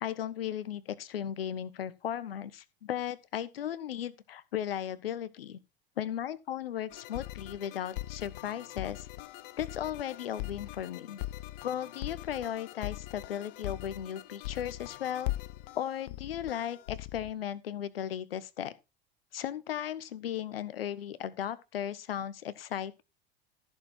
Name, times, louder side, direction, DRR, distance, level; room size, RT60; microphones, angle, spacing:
voice 1, 0.0-5.6 6.0-9.1 9.6-11.2 11.6-15.3 15.8-18.7 19.3-23.0, left 10 dB, 75° left, 1.4 m, -36 dB
sound 1, 6.9-17.3, left 17 dB, 60° left, 1.0 m, -41 dB
14.5 x 7.1 x 4.4 m
figure-of-eight pair, 80°, 29 cm